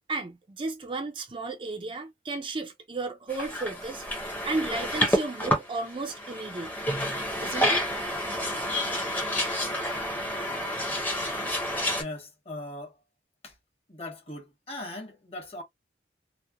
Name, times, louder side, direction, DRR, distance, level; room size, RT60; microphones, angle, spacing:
voice 1, 0.1-4.0 4.4-6.7 7.4-7.8, right 3 dB, 30° right, 0.4 m, -33 dB
sound 1, 3.3-12.0, equal, 10° left, 0.7 m, -29 dB
voice 2, 12.0-13.0 13.4-13.5 13.9-15.6, left 1 dB, 35° left, 1.0 m, -39 dB
2.9 x 2.1 x 2.3 m
head